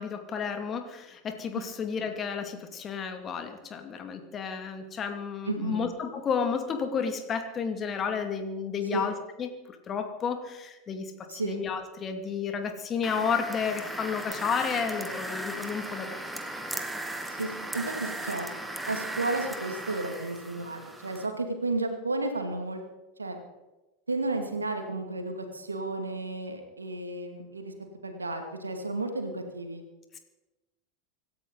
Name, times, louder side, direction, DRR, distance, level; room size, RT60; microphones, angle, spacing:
voice 1, 0.0-16.4 30.1-30.2, left 6 dB, 30° left, 6 dB, 2.4 m, -32 dB
voice 2, 5.5-5.9 8.9-9.1 11.3-11.6 17.3-18.5 18.9-22.8 23.2-23.4 24.1-27.7 28.0-29.8, right 2 dB, 85° right, 5 dB, 2.4 m, -32 dB
sound 1, 13.0-21.3, right 1 dB, 5° right, 2.1 m, -37 dB
25.5 x 13.0 x 4.1 m, 1.0 s
figure-of-eight pair, 80°, 0 cm